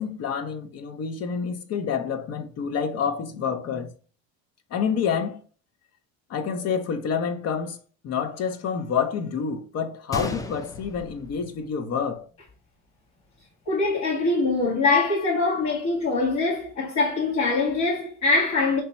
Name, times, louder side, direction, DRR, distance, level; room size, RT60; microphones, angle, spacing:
voice 1, 0.0-3.9 4.7-5.4 6.3-7.8 8.0-12.3, left 6 dB, 45° left, 0.7 m, -28 dB
Gunshot gunfire, 10.1-12.1 12.4-12.5 13.2-13.4, left 2 dB, 10° left, 0.3 m, -35 dB
voice 2, 13.7-18.8, left 3 dB, 65° left, 1.7 m, -23 dB
3.3 x 3.0 x 4.3 m
supercardioid pair, 100°, 35 cm